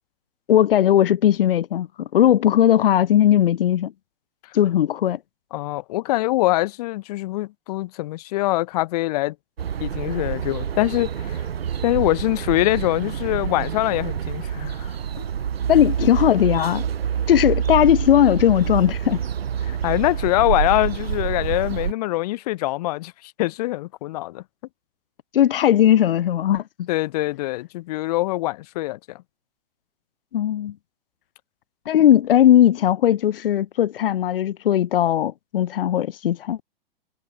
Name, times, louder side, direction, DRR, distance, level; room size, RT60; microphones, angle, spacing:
voice 1, 0.5-3.9 4.5-5.2 15.7-16.8 17.3-19.2 25.3-26.9 30.3-30.7 31.8-36.6, left 11 dB, 70° left, 1.6 m, -18 dB
voice 2, 5.5-9.3 9.8-11.4 11.8-15.2 19.7-24.4 26.9-29.2, left 18 dB, 40° left, 0.9 m, -24 dB
sound 1, 9.6-21.9, right 8 dB, 85° right, 2.9 m, -27 dB
hypercardioid pair, 150°, 29 cm